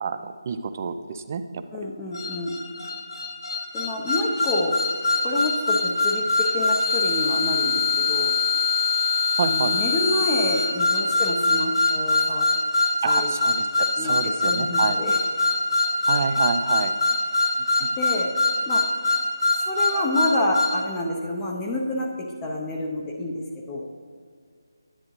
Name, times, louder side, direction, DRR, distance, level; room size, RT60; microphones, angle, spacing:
voice 1, 0.0-1.9 9.4-9.7 13.0-15.0 16.1-16.9 17.8-17.9, right 6 dB, 35° right, 10 dB, 0.4 m, -28 dB
voice 2, 1.7-2.6 3.7-4.8 5.2-8.4 9.4-12.5 13.0-13.3 14.0-15.2 18.0-18.3 18.7-18.9 19.6-23.9, left 1 dB, 15° left, -1 dB, 0.6 m, -28 dB
sound 1, 2.1-20.8, left 3 dB, 80° left, 1.4 m, -23 dB
10.0 x 8.4 x 3.1 m, 2.1 s
figure-of-eight pair, 160°, 2 cm